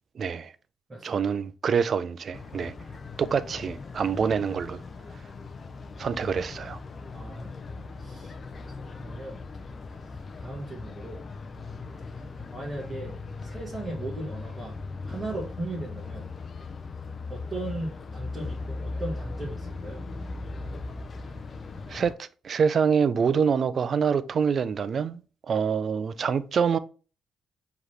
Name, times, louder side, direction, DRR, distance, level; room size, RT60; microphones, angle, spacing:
voice 1, 0.2-0.5 1.0-2.7 3.2-4.8 6.0-6.8 21.9-25.2 25.5-26.8, right 6 dB, 50° right, 0.4 m, -26 dB
voice 2, 0.9-1.2 7.1-7.6 8.0-8.3 8.9-9.4 9.9-11.2 12.5-13.1 13.4-14.8 15.1-16.3 17.3-20.0, right 2 dB, 25° right, 1.3 m, -37 dB
sound 1, 2.3-22.1, left 3 dB, 40° left, 0.5 m, -39 dB
4.8 x 3.0 x 3.2 m
cardioid pair, 90°, 0 cm